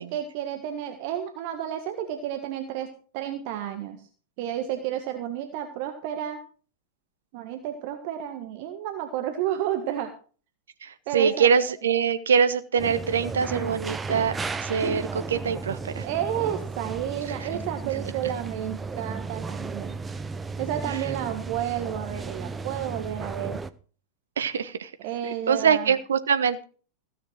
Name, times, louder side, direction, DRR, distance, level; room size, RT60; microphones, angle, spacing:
voice 1, 0.0-4.0 4.4-6.4 7.3-10.1 11.1-11.5 16.0-19.9 20.6-23.6 25.0-25.9, right 10 dB, 45° right, 7 dB, 1.4 m, -31 dB
voice 2, 10.8-14.4 14.6-16.1 17.3-17.5 20.9-21.1 24.4-24.9 25.2-26.6, right 6 dB, 65° right, 12 dB, 1.0 m, -24 dB
sound 1, 12.8-23.7, right 4 dB, 15° right, 0.7 m, -34 dB
15.5 x 6.7 x 6.2 m, 0.40 s
figure-of-eight pair, 90°, 0 cm